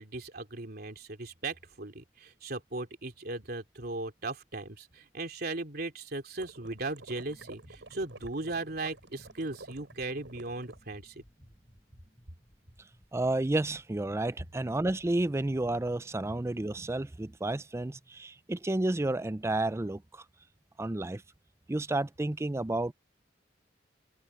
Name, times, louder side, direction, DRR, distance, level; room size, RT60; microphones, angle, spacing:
voice 1, 0.0-11.2, right 2 dB, 55° right, 3.2 m, -37 dB
sound 1, 6.4-10.8, right 2 dB, 75° right, 5.5 m, -51 dB
sound 2, 7.3-15.8, equal, 25° left, 7.0 m, -60 dB
voice 2, 13.1-20.2 20.8-21.2 21.7-22.9, right 2 dB, 15° right, 0.4 m, -31 dB
head